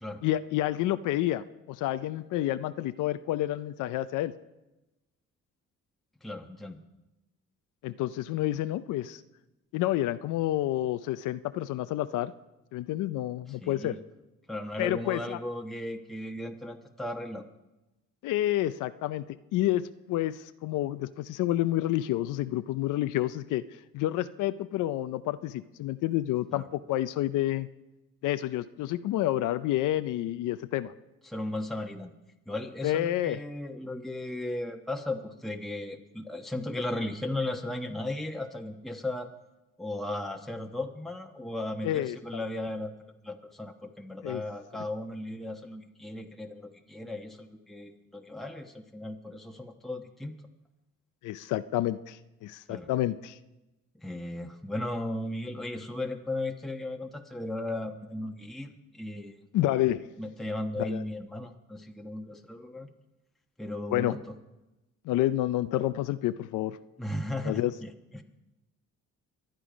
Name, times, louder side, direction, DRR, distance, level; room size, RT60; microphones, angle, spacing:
voice 1, 0.2-4.3 7.8-9.2 9.7-12.3 12.7-13.9 14.8-15.4 18.2-23.6 23.9-27.7 28.2-30.9 32.8-33.4 41.8-42.4 44.2-44.4 51.2-53.4 59.5-60.0 60.8-61.0 63.9-64.2 65.0-66.8 67.4-67.7, left 14 dB, 90° left, 12 dB, 0.6 m, -29 dB
voice 2, 6.2-6.8 13.6-14.0 14.5-17.4 26.5-26.6 31.2-32.1 32.5-39.3 39.8-42.9 43.2-50.3 52.7-52.9 54.0-59.4 60.2-62.9 63.6-64.2 67.0-68.2, left 1 dB, ahead, 2 dB, 1.2 m, -36 dB
24.0 x 9.1 x 5.1 m, 1.0 s
cardioid pair, 90°, 30 cm